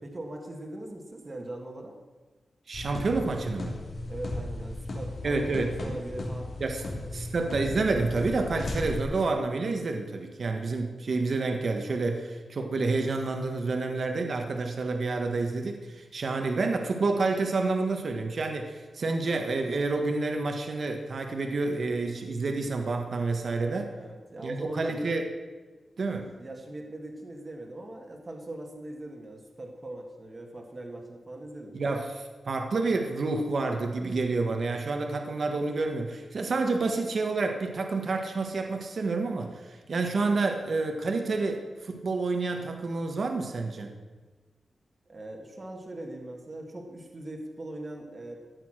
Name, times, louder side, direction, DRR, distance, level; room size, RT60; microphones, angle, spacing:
voice 1, 0.0-1.9 4.1-6.5 7.0-7.1 23.9-25.1 26.1-31.9 45.1-48.4, right 1 dB, 25° right, 1 dB, 1.9 m, -40 dB
sound 1, 2.7-9.1, left 1 dB, 50° left, 3.0 m, -36 dB
voice 2, 2.7-3.8 5.2-6.0 6.6-6.8 7.1-23.9 24.4-25.2 26.0-26.4 31.7-32.1 32.5-43.9, right 3 dB, 50° right, 4 dB, 1.5 m, -29 dB
14.5 x 9.7 x 6.4 m, 1.3 s
wide cardioid pair, 165°, 0 cm